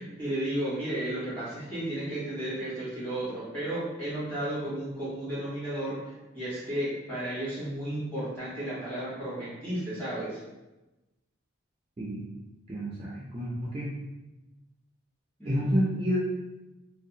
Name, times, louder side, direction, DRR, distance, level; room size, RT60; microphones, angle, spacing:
voice 1, 0.0-10.4 15.4-15.6, right 1 dB, 10° left, -11 dB, 1.1 m, -33 dB
voice 2, 12.7-13.9 15.5-16.2, equal, 30° right, -6 dB, 0.3 m, -29 dB
2.6 x 2.0 x 2.7 m, 1.0 s
head